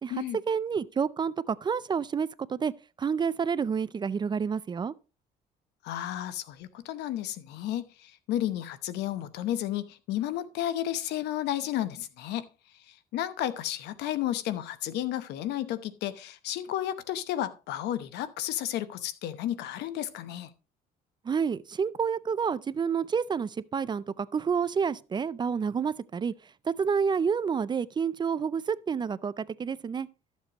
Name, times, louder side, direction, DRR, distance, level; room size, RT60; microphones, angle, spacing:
voice 1, 0.5-2.7 3.0-4.9 21.2-26.3 26.6-30.1, right 6 dB, 25° right, 0.4 m, -29 dB
voice 2, 5.8-12.5 12.9-20.5, left 12 dB, 85° left, 0.9 m, -32 dB
13.0 x 7.3 x 3.0 m
cardioid pair, 110°, 17 cm